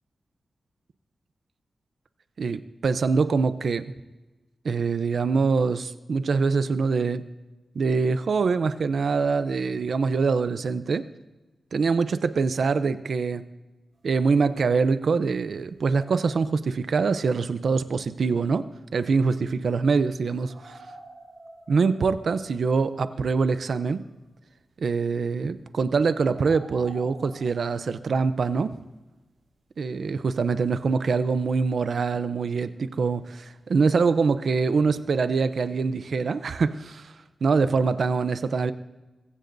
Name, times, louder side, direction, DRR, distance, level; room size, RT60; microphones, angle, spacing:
voice 1, 2.4-3.9 4.6-7.2 7.7-11.1 11.7-13.4 14.0-18.7 18.9-20.8 21.7-24.0 24.8-28.8 29.8-37.1 37.4-38.7, right 4 dB, 65° right, 12 dB, 0.6 m, -24 dB
sound 1, 13.9-14.1 14.5-15.3 15.7-16.8 20.3-22.4 23.1-23.2 23.5-23.6 24.0-24.2 25.1-25.6 26.2-28.2 30.4-30.5 31.3-31.4, right 2 dB, 45° right, 4.5 m, -48 dB
22.5 x 15.5 x 2.7 m, 1.1 s
wide cardioid pair, 160°, 0 cm